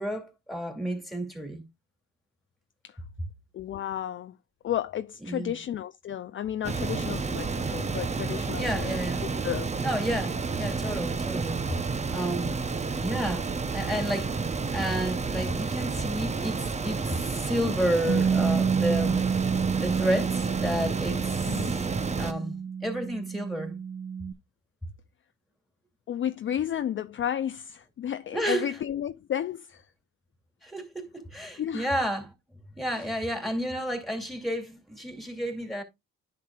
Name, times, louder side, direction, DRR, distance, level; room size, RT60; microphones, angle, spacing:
voice 1, 0.0-1.6 5.2-5.5 8.6-9.2 9.8-11.6 12.1-12.7 13.0-19.3 19.8-21.9 22.2-23.8 28.3-28.7 30.6-32.3 32.8-35.8, equal, ahead, 2.4 m, -31 dB
voice 2, 3.5-4.4 4.6-9.0 9.4-9.7 21.5-21.7 26.1-29.9 31.6-31.9, left 10 dB, 40° left, 0.4 m, -32 dB
sound 1, 6.6-22.3, right 4 dB, 20° right, 0.8 m, -30 dB
Bass guitar, 18.1-24.3, right 6 dB, 50° right, 0.9 m, -29 dB
10.5 x 6.0 x 2.4 m
cardioid pair, 90°, 30 cm